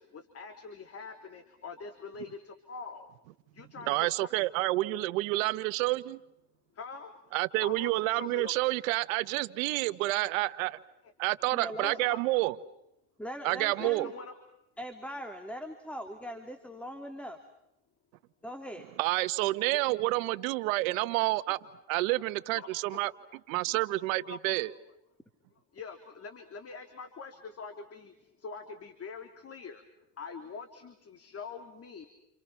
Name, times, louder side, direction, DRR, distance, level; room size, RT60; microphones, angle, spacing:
voice 1, 0.0-3.1 3.5-4.3 6.7-7.1 7.6-8.5 11.8-12.2 13.8-14.3 21.5-21.6 22.6-23.0 23.8-23.9 24.2-24.4 25.7-29.8 30.2-32.1, left 5 dB, 35° left, 3.4 m, -44 dB
voice 2, 3.9-6.2 7.3-10.8 11.2-12.6 13.4-14.1 19.0-21.6 21.9-23.1 23.5-24.7, right 20 dB, 90° right, 1.5 m, -29 dB
voice 3, 11.5-12.0 13.2-14.1 14.8-17.4 18.4-18.9, equal, 5° left, 3.0 m, -40 dB
29.5 x 29.0 x 5.9 m
supercardioid pair, 105°, 39 cm